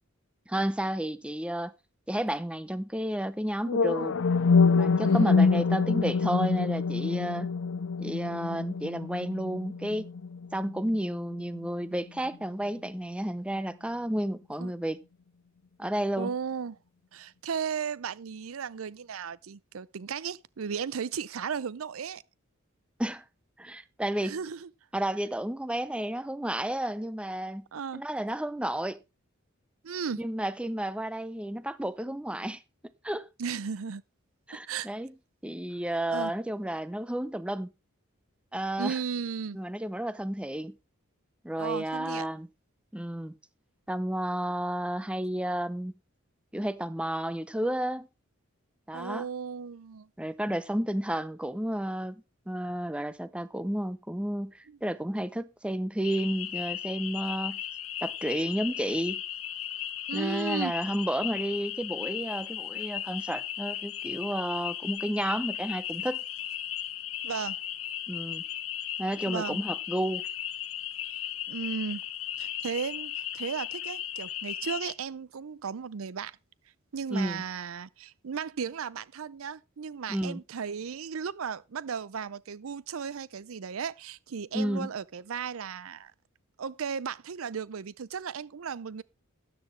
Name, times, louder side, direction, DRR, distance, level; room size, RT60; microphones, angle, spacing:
voice 1, 0.5-1.7 2.1-4.2 4.7-7.5 8.0-10.1 10.5-15.0 15.8-16.3 23.0-23.2 23.6-24.4 24.9-27.7 27.9-29.0 30.2-32.6 33.0-33.3 34.5-35.1 35.4-37.7 38.5-39.0 39.5-40.7 41.4-42.5 42.9-43.3 43.9-45.9 46.5-48.1 48.9-49.3 50.2-57.6 58.0-59.2 60.1-66.2 68.1-68.4 69.0-70.2 77.1-77.4 80.1-80.4 84.5-84.9, right 1 dB, 5° right, 0.6 m, -31 dB
sound 1, 3.6-11.7, left 4 dB, 65° left, 0.5 m, -26 dB
voice 2, 16.2-16.8 17.1-22.2 24.2-24.7 27.7-28.0 29.8-30.2 33.4-34.0 34.7-34.9 36.1-36.3 38.8-39.6 41.6-42.3 48.9-50.1 54.7-54.8 60.1-60.7 67.2-67.6 69.3-69.6 71.5-72.0 72.4-76.4 76.9-86.1 86.6-89.0, right 6 dB, 80° right, 0.5 m, -35 dB
sound 2, 56.0-74.9, left 11 dB, 90° left, 1.1 m, -36 dB
13.0 x 10.0 x 3.2 m
head